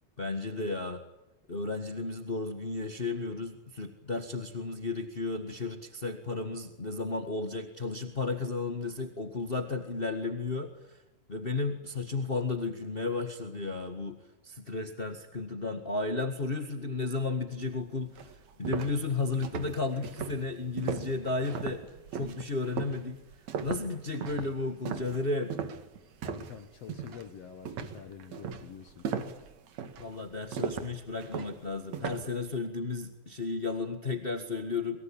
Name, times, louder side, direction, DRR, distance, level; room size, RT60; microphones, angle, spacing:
voice 1, 0.2-1.0 1.5-11.0 11.3-21.8 22.1-23.2 23.6-25.5 30.0-35.0, left 3 dB, 35° left, 6 dB, 0.8 m, -33 dB
sound 1, 17.7-17.8 18.2-26.6 26.9-27.3 27.7-32.4, right 7 dB, 55° right, 2.7 m, -37 dB
voice 2, 26.2-28.9, left 7 dB, 60° left, 10 dB, 1.9 m, -46 dB
23.5 x 23.0 x 8.8 m, 0.96 s
omnidirectional pair, 4.0 m